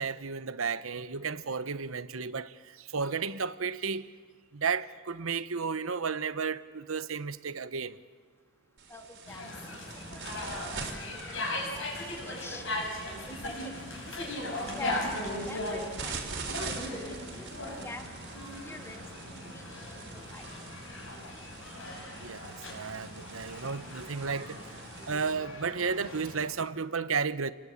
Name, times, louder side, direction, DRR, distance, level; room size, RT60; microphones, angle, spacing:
voice 1, 0.0-4.1 4.5-8.0 22.2-24.6 25.1-27.5, right 5 dB, 80° right, 1.0 m, -33 dB
sound 1, 8.8-25.3, right 4 dB, 60° right, 3.8 m, -45 dB
voice 2, 8.9-9.4 10.1-12.7 13.3-16.4 17.1-18.0 18.6-19.1 19.5-19.6 20.0-20.5, left 2 dB, 10° left, 2.0 m, -46 dB
sound 2, 9.3-26.5, left 1 dB, 65° left, 6.7 m, -38 dB
29.0 x 20.0 x 8.8 m
head